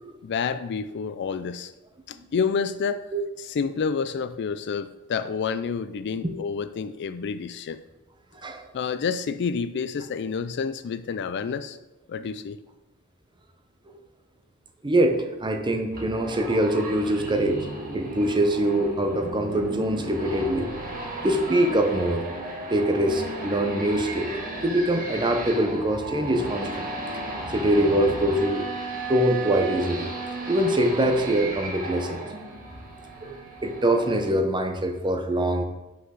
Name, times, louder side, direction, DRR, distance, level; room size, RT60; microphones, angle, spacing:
voice 1, 0.2-1.7 2.1-3.0 3.4-7.8 8.7-11.8 12.1-12.6, left 5 dB, 50° left, 13 dB, 0.4 m, -29 dB
voice 2, 8.3-8.6 14.8-17.6 17.9-20.7 21.2-22.3 22.7-24.3 24.6-26.9 27.5-28.6 29.1-30.1 30.5-32.2 33.2-33.4 33.6-35.6, right 1 dB, 20° right, 5 dB, 0.8 m, -23 dB
sound 1, 15.9-34.3, right 2 dB, 40° right, 1.5 m, -35 dB
5.8 x 5.7 x 6.3 m, 1.0 s
head